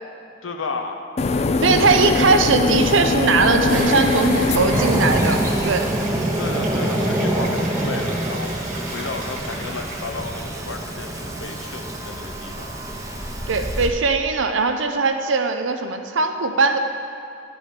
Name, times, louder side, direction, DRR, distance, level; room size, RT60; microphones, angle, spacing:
voice 1, 0.4-1.0 2.0-2.1 4.0-4.3 4.6-4.9 6.4-8.5 8.9-12.7, left 4 dB, 85° left, 4 dB, 0.8 m, -33 dB
sound 1, 1.2-5.9, left 3 dB, 35° left, 0.3 m, -22 dB
voice 2, 1.6-5.9 13.5-16.8, right 4 dB, 70° right, 6 dB, 0.7 m, -20 dB
sound 2, 3.4-10.6, right 2 dB, 45° right, 1.5 m, -33 dB
Fireworks, 4.7-13.9, right 1 dB, 15° right, 0.8 m, -26 dB
11.5 x 5.3 x 5.0 m, 2.5 s
head